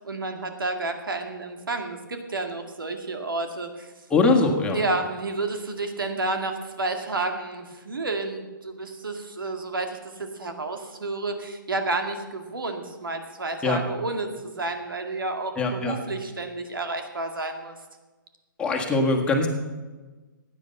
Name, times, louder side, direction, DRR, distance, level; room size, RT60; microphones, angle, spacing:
voice 1, 0.0-3.9 4.7-17.8, right 2 dB, 90° right, 5 dB, 2.1 m, -30 dB
voice 2, 4.1-4.8 13.6-13.8 15.6-16.0 18.6-19.5, left 3 dB, 10° left, 1 dB, 1.7 m, -22 dB
16.0 x 9.9 x 5.5 m, 1.3 s
hypercardioid pair, 150°, 11 cm